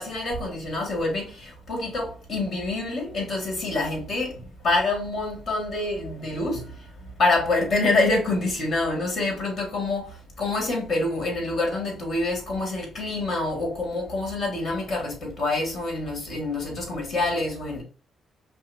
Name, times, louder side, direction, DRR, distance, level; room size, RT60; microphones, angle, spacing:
voice 1, 0.0-6.8 7.2-17.8, left 2 dB, 55° left, 2.0 m, -26 dB
5.5 x 2.3 x 2.8 m
cardioid pair, 90°, 0 cm